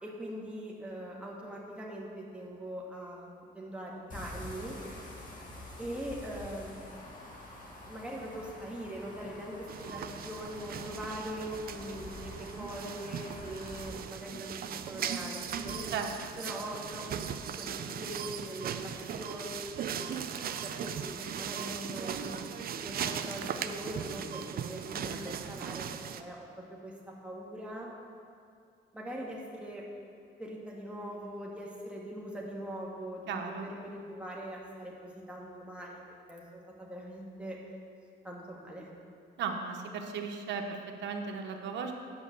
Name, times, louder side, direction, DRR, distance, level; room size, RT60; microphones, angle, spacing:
voice 1, 0.0-4.8 5.8-6.9 7.9-15.8 16.4-17.3 17.6-19.9 20.6-27.9 28.9-29.8 30.4-36.0 36.3-37.6 38.2-38.9, right 1 dB, 5° right, -4 dB, 1.7 m, -42 dB
sound 1, 4.1-13.9, left 1 dB, 45° left, 1.8 m, -47 dB
sound 2, 9.7-26.2, right 8 dB, 55° right, 0.5 m, -38 dB
voice 2, 15.9-16.4 33.3-33.7 39.4-41.9, right 5 dB, 80° right, 3 dB, 1.0 m, -36 dB
10.0 x 5.5 x 6.8 m, 2.4 s
cardioid pair, 115°, 18 cm